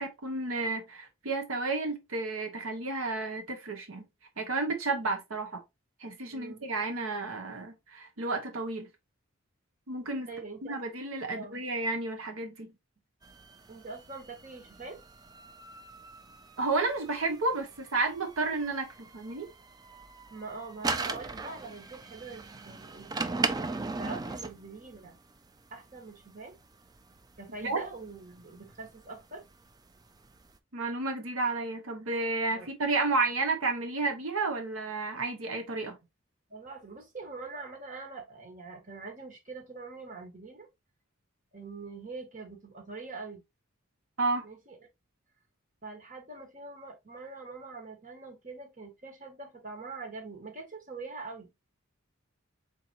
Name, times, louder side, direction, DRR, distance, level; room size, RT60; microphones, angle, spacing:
voice 1, 0.0-4.0 4.4-5.6 6.0-8.9 9.9-10.3 10.6-12.7 16.6-19.5 27.6-27.8 30.7-36.0 44.2-44.5, right 3 dB, 80° right, 1.0 m, -31 dB
voice 2, 6.3-6.6 10.3-10.8 11.3-11.6 13.7-15.0 20.3-23.5 24.0-25.2 25.7-26.5 27.4-29.4 32.5-32.7 36.5-40.7 41.5-43.4 44.4-44.8 45.8-51.5, right 3 dB, 40° right, 1.5 m, -44 dB
sound 1, 13.2-25.2 25.8-29.6 29.9-30.6, right 3 dB, 20° right, 0.4 m, -38 dB
4.1 x 4.1 x 2.8 m
head